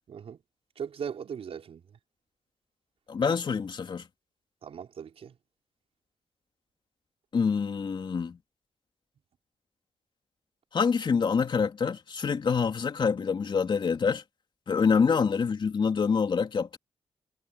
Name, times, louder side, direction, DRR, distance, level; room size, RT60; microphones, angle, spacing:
voice 1, 0.1-0.4 0.8-1.8 4.6-5.4, right 7 dB, 70° right, 5.3 m, -38 dB
voice 2, 3.1-4.1 7.3-8.4 10.7-14.2 14.7-16.8, left 5 dB, 50° left, 3.4 m, -26 dB
cardioid pair, 95°, 10 cm